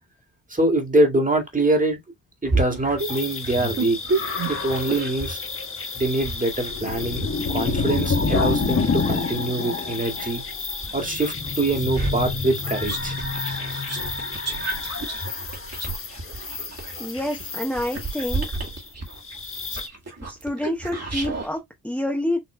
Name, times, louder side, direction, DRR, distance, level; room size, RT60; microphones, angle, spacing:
voice 1, 0.5-2.0 2.4-4.0 4.5-5.4 6.0-10.4 10.9-13.1, right 2 dB, 20° right, 1.9 m, -24 dB
sound 1, 2.4-5.4 6.0-10.3 10.8-21.5, right 3 dB, 40° right, 2.1 m, -31 dB
sound 2, 3.0-19.9, left 4 dB, 35° left, 1.3 m, -29 dB
voice 2, 17.0-18.5 20.2-22.4, left 1 dB, 5° left, 1.0 m, -28 dB
6.0 x 3.0 x 2.2 m
cardioid pair, 70°, 38 cm